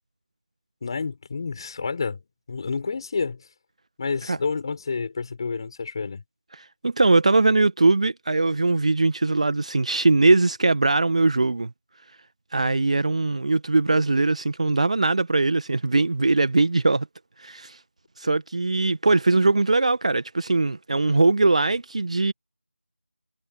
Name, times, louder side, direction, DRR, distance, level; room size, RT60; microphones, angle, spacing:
voice 1, 0.8-2.2 2.5-3.5 4.0-6.2 18.3-18.4, left 4 dB, 20° left, 6.9 m, -29 dB
voice 2, 6.5-11.7 12.5-17.1 17.4-17.8 18.2-22.3, right 3 dB, 30° right, 1.4 m, -21 dB
figure-of-eight pair, 170°, 7 cm